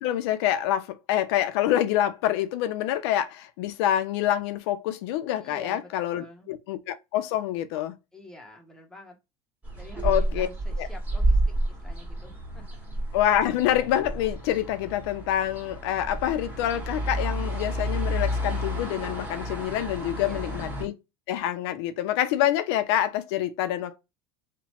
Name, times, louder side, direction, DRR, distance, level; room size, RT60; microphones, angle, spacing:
voice 1, 0.0-8.0 10.0-10.5 10.8-10.9 13.1-20.9 21.3-24.0, left 12 dB, 80° left, 0.4 m, -26 dB
voice 2, 5.4-6.5 8.1-9.2 9.8-12.7 20.2-20.6, left 1 dB, 5° left, 0.7 m, -47 dB
sound 1, 9.6-20.8, right 1 dB, 10° right, 1.4 m, -30 dB
2.9 x 2.1 x 2.9 m
supercardioid pair, 130°, 14 cm